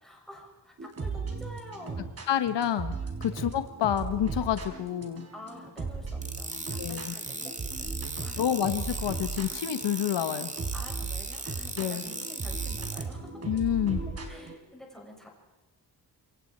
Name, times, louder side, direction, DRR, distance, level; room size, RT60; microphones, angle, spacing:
voice 1, 0.0-2.1 3.3-3.5 5.3-8.5 10.7-13.4 14.3-15.3, left 1 dB, ahead, -1 dB, 6.6 m, -48 dB
sound 1, 0.8-14.5, right 4 dB, 35° right, 4.1 m, -37 dB
voice 2, 2.3-2.9 3.2-5.3 6.8-7.1 8.4-10.5 11.8-12.0 13.4-14.0, left 10 dB, 90° left, 10 dB, 1.3 m, -28 dB
sound 2, 6.2-13.0, right 2 dB, 15° right, 1.8 m, -38 dB
27.5 x 24.5 x 4.5 m, 1.0 s
wide cardioid pair, 140°, 41 cm